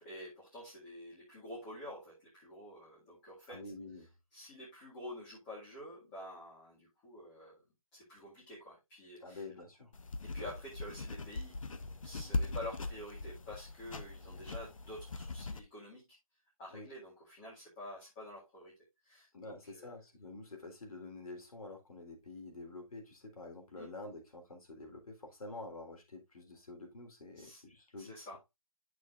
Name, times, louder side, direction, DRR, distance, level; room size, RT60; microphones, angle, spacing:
voice 1, 0.0-3.7 4.3-7.6 7.9-9.4 10.2-11.6 12.0-16.1 16.6-18.7 19.0-19.9 23.8-23.9 27.3-27.6 28.0-28.4, left 1 dB, 15° left, 2.1 m, -48 dB
voice 2, 3.5-4.1 9.2-9.9 16.7-16.9 19.3-28.2, left 2 dB, 85° left, 3.6 m, -48 dB
sound 1, 9.9-15.6, left 2 dB, 65° left, 1.0 m, -40 dB
10.5 x 6.2 x 2.5 m
hypercardioid pair, 170°, 18 cm